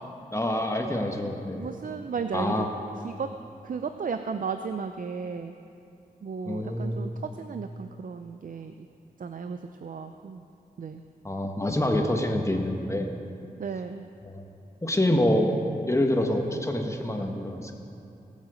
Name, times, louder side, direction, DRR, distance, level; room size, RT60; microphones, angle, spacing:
voice 1, 0.3-1.7 2.3-2.7 6.4-7.0 11.2-13.1 14.2-14.4 14.8-15.5 15.9-17.7, left 1 dB, 20° left, 3 dB, 1.4 m, -26 dB
voice 2, 1.6-2.7 3.0-3.3 3.6-5.5 6.2-8.9 9.2-10.4 10.8-11.0 13.6-14.0, right 5 dB, 60° right, 7 dB, 0.5 m, -34 dB
19.5 x 7.4 x 5.0 m, 2.6 s
cardioid pair, 65°, 16 cm